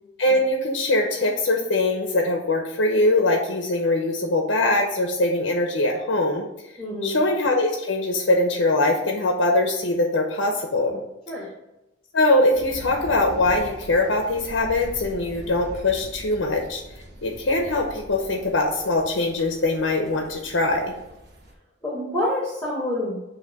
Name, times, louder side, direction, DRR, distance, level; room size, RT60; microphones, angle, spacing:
voice 1, 0.2-6.5 7.0-11.0 12.1-16.8 17.2-20.9, left 2 dB, 85° left, 2 dB, 0.8 m, -22 dB
voice 2, 6.8-7.2 11.3-11.5 21.8-23.2, left 1 dB, 5° left, -6 dB, 1.3 m, -27 dB
sound 1, 12.5-21.5, right 1 dB, 55° right, 1.0 m, -42 dB
6.8 x 2.8 x 5.1 m, 0.94 s
head